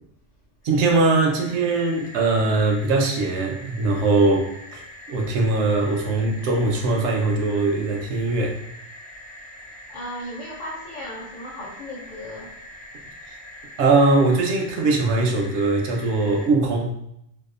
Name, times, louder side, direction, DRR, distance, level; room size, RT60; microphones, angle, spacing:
sound 1, 0.6-16.5, left 1 dB, 80° left, 0.9 m, -43 dB
voice 1, 0.6-8.6 13.3-13.4 13.8-17.0, right 3 dB, 85° right, 1 dB, 0.9 m, -21 dB
voice 2, 9.9-12.6, left 1 dB, 55° left, -4 dB, 0.5 m, -36 dB
2.7 x 2.2 x 2.4 m, 0.77 s
omnidirectional pair, 1.1 m